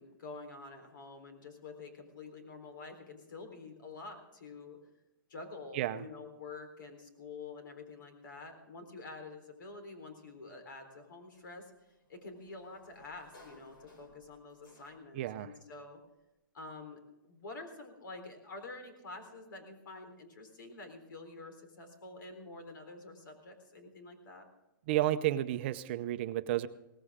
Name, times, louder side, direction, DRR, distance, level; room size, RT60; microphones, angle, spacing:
voice 1, 0.0-4.8 5.3-11.7 12.1-16.0 16.5-24.5, left 3 dB, 70° left, 6 dB, 3.8 m, -48 dB
voice 2, 5.7-6.1 15.1-15.5 24.9-26.7, right 13 dB, 35° right, 12 dB, 0.7 m, -31 dB
Sliding door, 11.3-15.3, left 2 dB, 85° left, 4.2 m, -61 dB
18.0 x 15.5 x 3.6 m, 0.96 s
hypercardioid pair, 165°, 11 cm